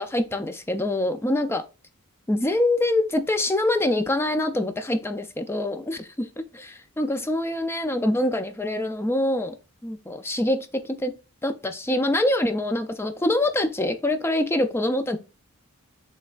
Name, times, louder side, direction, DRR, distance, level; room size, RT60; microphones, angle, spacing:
voice 1, 0.0-1.6 2.3-6.3 6.5-9.5 9.8-11.1 11.4-15.2, left 1 dB, 10° left, 0.3 m, -25 dB
5.2 x 3.3 x 2.4 m
head